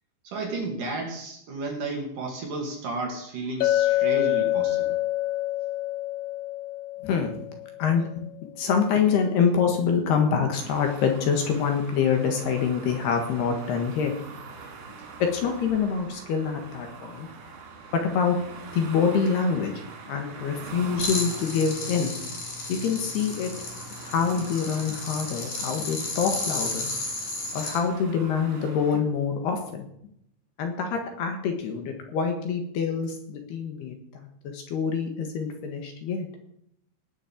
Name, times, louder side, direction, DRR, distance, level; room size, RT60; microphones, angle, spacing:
voice 1, 0.2-5.0, right 3 dB, 50° right, 1 dB, 3.3 m, -33 dB
Chink clink, 3.6-8.0, left 15 dB, 80° left, 3.1 m, -26 dB
voice 2, 7.8-8.2 8.6-14.1 15.2-17.3 18.0-18.4 18.7-19.7 20.1-22.1 22.7-23.5 24.0-26.9 27.5-29.8 30.6-34.0 34.4-36.3, left 6 dB, 65° left, 4 dB, 3.2 m, -25 dB
sound 1, 10.6-29.0, right 4 dB, 80° right, 5.7 m, -44 dB
sound 2, 21.0-27.8, left 3 dB, 40° left, 4.5 m, -33 dB
19.0 x 7.5 x 7.3 m, 0.74 s
omnidirectional pair, 5.6 m